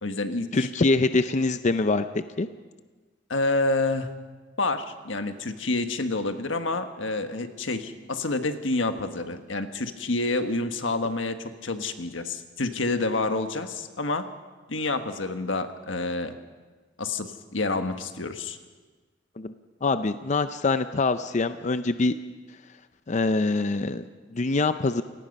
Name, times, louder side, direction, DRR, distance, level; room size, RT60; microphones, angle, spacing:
voice 1, 0.0-0.7 3.3-4.1 4.6-14.2 14.7-16.3 17.0-18.6, left 2 dB, 85° left, 7 dB, 1.5 m, -28 dB
voice 2, 0.5-2.0 2.4-2.5 19.4-19.5 19.8-22.1 23.1-25.0, left 3 dB, 40° left, 11 dB, 0.6 m, -24 dB
29.0 x 18.0 x 5.4 m, 1.4 s
head